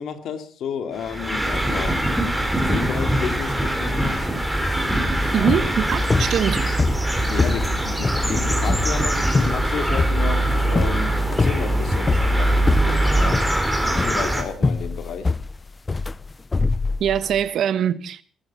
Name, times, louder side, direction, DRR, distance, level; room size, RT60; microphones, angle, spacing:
voice 1, 0.0-2.0 2.6-4.4 5.4-5.6 7.3-13.4 13.8-15.3, left 7 dB, 75° left, 2.5 m, -32 dB
sound 1, 1.0-14.4, right 1 dB, ahead, 4.2 m, -22 dB
sound 2, 5.2-17.4, left 3 dB, 25° left, 0.7 m, -25 dB
voice 2, 5.3-6.6 17.0-18.2, right 9 dB, 70° right, 1.2 m, -22 dB
19.0 x 13.5 x 5.5 m
cardioid pair, 90°, 0 cm